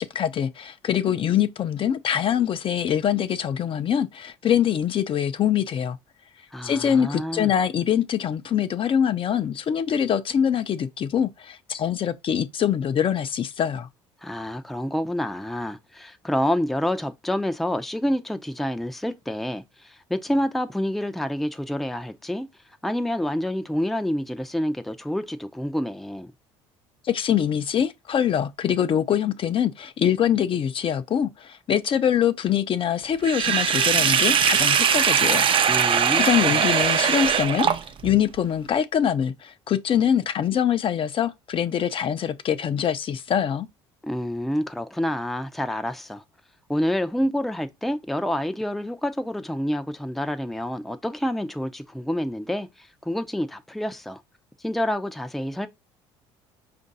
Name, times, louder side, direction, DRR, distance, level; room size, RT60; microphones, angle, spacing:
voice 1, 0.0-6.0 6.6-13.9 27.0-35.5 35.8-35.9 36.2-37.7 38.0-43.7, left 9 dB, 45° left, 0.6 m, -24 dB
voice 2, 6.5-7.5 14.2-22.5 22.8-26.3 35.7-36.6 44.0-46.2 46.7-54.2 54.6-55.7, left 1 dB, ahead, 0.5 m, -28 dB
Sink (filling or washing), 33.2-38.2, right 8 dB, 45° right, 0.6 m, -20 dB
5.1 x 2.6 x 4.0 m
supercardioid pair, 75°, 12 cm